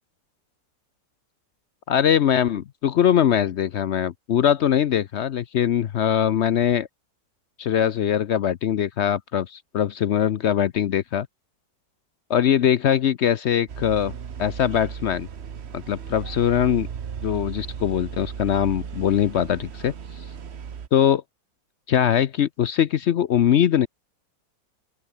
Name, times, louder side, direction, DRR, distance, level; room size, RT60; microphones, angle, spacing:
voice 1, 1.9-6.9 7.6-11.3 12.3-14.1 14.4-15.3 15.7-16.9 17.2-19.9 20.9-21.2 21.9-23.9, left 9 dB, 70° left, 0.6 m, -21 dB
sound 1, 13.7-20.9, right 7 dB, 45° right, 1.1 m, -36 dB
open air
omnidirectional pair, 2.0 m